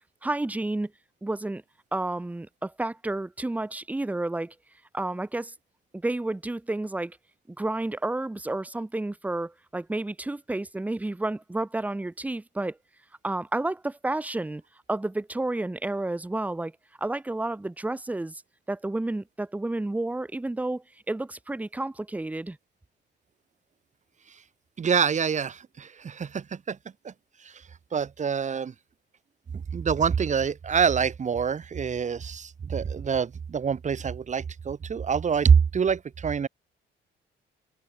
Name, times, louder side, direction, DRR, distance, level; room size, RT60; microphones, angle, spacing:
voice 1, 0.2-0.9 1.2-1.6 1.9-4.5 4.9-5.5 5.9-7.2 7.5-12.8 13.2-14.6 14.9-16.7 17.0-18.4 18.7-22.6, right 2 dB, 10° right, 0.5 m, -31 dB
voice 2, 24.8-26.8 27.0-27.1 27.4-27.6 27.9-28.7 29.5-36.5, right 6 dB, 35° right, 1.2 m, -26 dB
cardioid pair, 90°, 20 cm